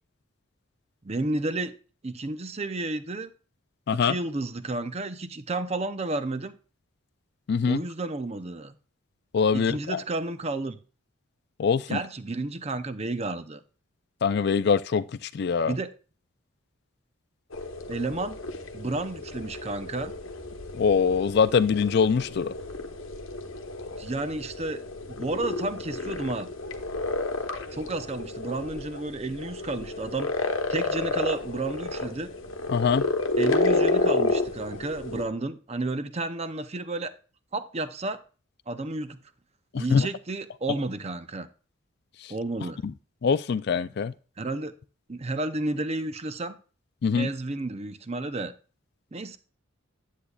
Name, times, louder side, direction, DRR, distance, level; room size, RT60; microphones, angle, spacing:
voice 1, 1.0-1.8 2.0-3.3 3.9-6.5 7.7-8.7 9.5-10.8 11.9-13.6 15.7-15.9 17.9-18.4 18.7-20.1 24.0-24.8 25.1-26.5 27.7-32.3 33.4-37.1 37.5-38.2 38.7-39.2 39.7-41.5 42.3-42.8 44.4-44.7 45.1-46.6 47.2-48.5 49.1-49.4, right 2 dB, 30° right, 0.6 m, -31 dB
voice 2, 7.5-7.8 9.3-10.0 11.6-12.0 14.2-15.7 20.7-22.5 32.7-33.0 39.7-40.1 43.2-44.1 47.0-47.3, left 6 dB, 55° left, 0.4 m, -23 dB
sound 1, 17.5-35.2, left 2 dB, 70° left, 1.0 m, -30 dB
10.0 x 8.3 x 2.4 m
head